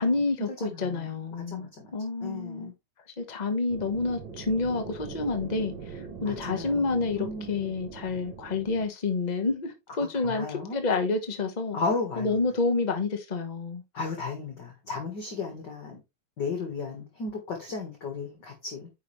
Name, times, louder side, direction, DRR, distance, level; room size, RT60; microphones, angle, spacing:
voice 1, 0.0-2.7 3.2-11.8 12.2-13.8, left 3 dB, 60° left, 0.4 m, -29 dB
voice 2, 0.6-1.1 1.5-1.9 2.2-2.7 6.3-6.8 7.2-7.5 10.2-10.8 11.7-12.3 13.9-16.0 16.4-18.9, left 4 dB, 40° left, 1.9 m, -34 dB
sound 1, 3.7-8.9, right 5 dB, 55° right, 1.4 m, -42 dB
9.6 x 5.6 x 3.2 m
omnidirectional pair, 3.4 m